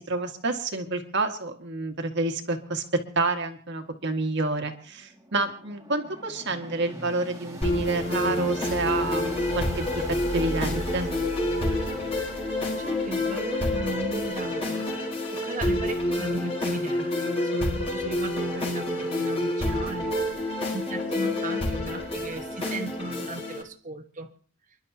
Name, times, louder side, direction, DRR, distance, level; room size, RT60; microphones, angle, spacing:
voice 1, 0.0-2.8 3.2-11.1, right 2 dB, 60° right, 4 dB, 1.9 m, -29 dB
sound 1, 4.8-13.6, equal, 15° right, 2.3 m, -38 dB
sound 2, 7.6-23.6, left 1 dB, 30° left, 4.5 m, -28 dB
voice 2, 12.7-14.9 15.3-20.1 20.7-24.3, right 3 dB, 40° right, 4 dB, 1.4 m, -37 dB
29.5 x 11.5 x 2.9 m, 0.43 s
head